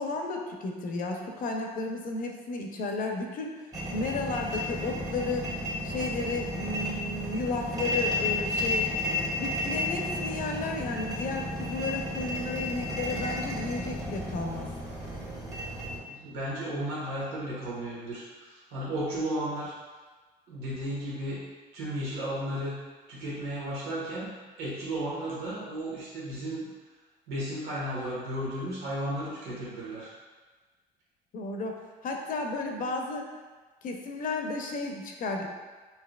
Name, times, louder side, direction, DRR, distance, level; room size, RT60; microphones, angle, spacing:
voice 1, 0.0-3.5 3.9-5.5 5.8-8.9 9.4-14.7 31.3-31.8 32.0-33.3 33.8-35.5, left 3 dB, 55° left, 2 dB, 0.6 m, -33 dB
sound 1, 3.7-16.0, left 1 dB, 20° right, 1.2 m, -32 dB
voice 2, 16.1-19.7 20.5-21.4 21.7-22.8 23.1-26.7 27.3-30.1, right 1 dB, 80° right, -7 dB, 1.4 m, -34 dB
5.7 x 2.8 x 2.3 m, 1.4 s
cardioid pair, 110°, 17 cm